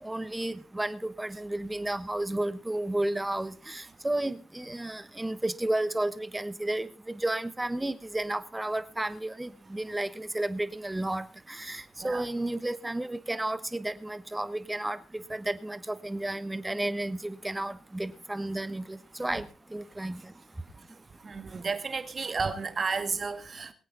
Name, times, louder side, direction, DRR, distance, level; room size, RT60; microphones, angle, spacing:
voice 1, 0.0-19.5 19.7-20.2, right 1 dB, 10° right, 14 dB, 1.2 m, -32 dB
voice 2, 21.2-23.7, right 4 dB, 35° right, 9 dB, 2.2 m, -32 dB
23.5 x 8.6 x 3.9 m, 0.33 s
cardioid pair, 90°, 0 cm